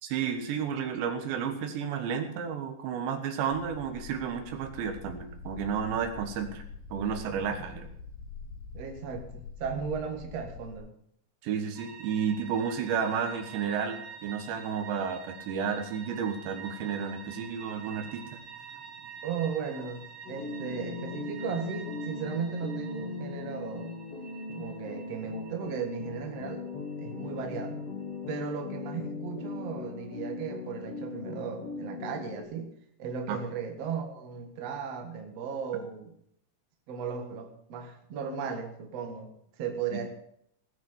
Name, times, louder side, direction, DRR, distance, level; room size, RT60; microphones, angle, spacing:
voice 1, 0.0-6.6 6.9-7.9 11.4-18.2 33.3-33.4, right 7 dB, 90° right, 6 dB, 3.8 m, -32 dB
sound 1, 3.5-10.8, left 4 dB, 85° left, 3.4 m, -45 dB
voice 2, 8.7-10.9 19.2-24.0 24.6-26.7 27.0-27.8 28.3-32.7 33.0-36.1 36.9-39.3 39.6-40.1, right 6 dB, 50° right, 4 dB, 2.1 m, -36 dB
sound 2, 11.8-28.7, right 7 dB, 70° right, 1.3 m, -48 dB
sound 3, 20.3-32.4, left 3 dB, 60° left, 1.6 m, -39 dB
19.0 x 6.6 x 7.3 m, 0.70 s
omnidirectional pair, 5.0 m